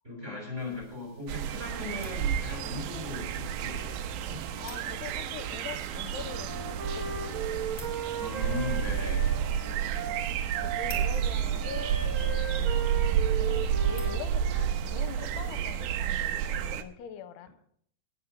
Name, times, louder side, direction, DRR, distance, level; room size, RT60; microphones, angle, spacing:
voice 1, 0.0-4.4 6.7-6.8 8.2-9.3 12.7-12.8, left 2 dB, 15° right, -1 dB, 5.1 m, -38 dB
sound 1, 0.6-16.4, left 3 dB, 25° left, 3.1 m, -54 dB
sound 2, 1.3-16.8, right 9 dB, 80° right, 2.2 m, -30 dB
voice 2, 4.6-7.7 9.2-12.9 13.4-17.5, left 8 dB, 75° left, 11 dB, 2.7 m, -44 dB
Wind instrument woodwind instrument, 6.2-14.7, right 6 dB, 65° right, 1.2 m, -37 dB
18.5 x 6.3 x 6.8 m, 0.67 s
omnidirectional pair, 5.1 m